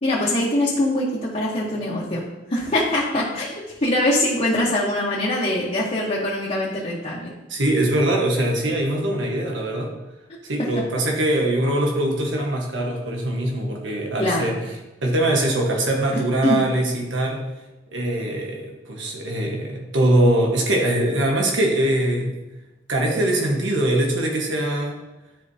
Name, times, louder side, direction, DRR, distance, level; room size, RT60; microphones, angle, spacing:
voice 1, 0.0-2.2 2.5-7.3 14.2-14.5 16.1-16.6, left 1 dB, 40° left, -6 dB, 1.1 m, -23 dB
voice 2, 7.5-9.9 10.4-14.6 15.0-17.4 17.9-22.4 22.9-25.0, right 1 dB, 85° right, 0 dB, 1.3 m, -22 dB
10.5 x 4.7 x 2.8 m, 1.0 s
head